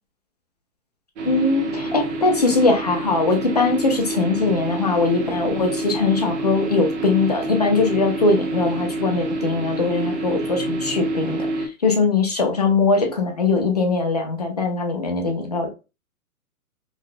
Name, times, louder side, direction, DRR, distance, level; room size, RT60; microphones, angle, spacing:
voice 1, 1.2-15.7, left 3 dB, 30° left, 3 dB, 0.4 m, -21 dB
sound 1, 1.2-11.7, right 2 dB, 50° right, 0.8 m, -27 dB
3.9 x 2.2 x 2.4 m, 0.30 s
hypercardioid pair, 150°, 45 cm